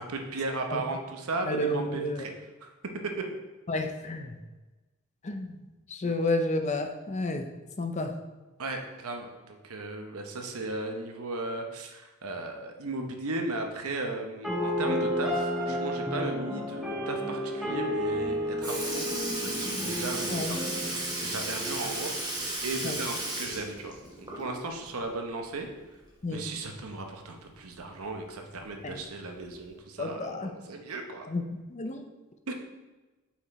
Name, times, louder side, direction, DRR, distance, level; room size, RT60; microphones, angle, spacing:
voice 1, 0.0-2.3 2.6-2.7 6.0-6.1 8.6-20.6 21.2-25.7 26.3-31.3 32.5-32.6, right 2 dB, 75° right, 3 dB, 0.9 m, -36 dB
voice 2, 1.5-2.2 3.7-4.4 5.2-5.6 5.9-8.1 20.3-20.6 22.8-23.0 26.2-26.5 28.8-29.0 30.0-30.5 31.3-31.4 31.7-32.0, left 1 dB, 30° left, 6 dB, 0.5 m, -31 dB
sound 1, 14.4-22.4, equal, ahead, 1.4 m, -32 dB
Sink (filling or washing) / Liquid, 18.2-18.3 18.6-24.7 25.1-25.2 26.7-26.8 27.7-27.8 28.7-28.9 29.7-29.8, right 1 dB, 20° right, 1.2 m, -34 dB
5.7 x 4.7 x 4.2 m, 1.2 s
head